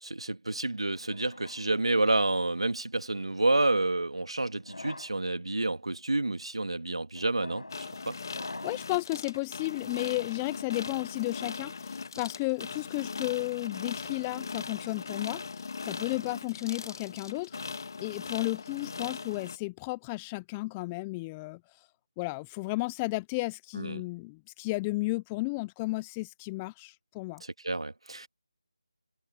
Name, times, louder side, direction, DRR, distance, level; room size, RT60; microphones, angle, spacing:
voice 1, 0.0-8.2 23.8-24.0 27.4-28.3, right 2 dB, 80° right, 2.1 m, -29 dB
sound 1, 1.1-2.5 3.3-3.7 4.5-5.2 5.9-6.2 7.1-9.0, left 2 dB, 85° left, 6.0 m, -46 dB
sound 2, 7.7-19.6, left 4 dB, 45° left, 1.7 m, -39 dB
voice 2, 8.6-21.6 22.2-27.4, left 24 dB, 10° left, 0.3 m, -33 dB
figure-of-eight pair, 165°, 3 cm